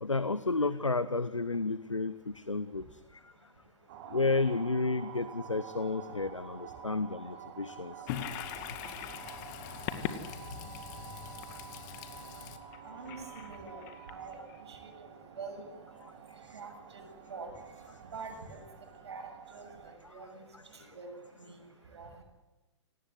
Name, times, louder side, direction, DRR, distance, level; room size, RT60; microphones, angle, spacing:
voice 1, 0.0-2.8 4.1-7.9 16.0-16.1, left 3 dB, 90° left, 14 dB, 1.0 m, -31 dB
sound 1, 3.9-20.0, right 9 dB, 40° right, 2.6 m, -50 dB
Wind instrument woodwind instrument, 4.3-14.2, right 7 dB, 15° right, 6.0 m, -53 dB
Toilet flush, 8.1-14.6, left 10 dB, 40° left, 2.2 m, -41 dB
voice 2, 12.8-13.8 14.1-15.7 16.5-17.6 18.0-18.6 19.0-21.1 21.4-22.2, right 4 dB, 65° right, 4 dB, 7.5 m, -46 dB
28.0 x 19.0 x 8.1 m, 1.1 s
figure-of-eight pair, 115°, 15 cm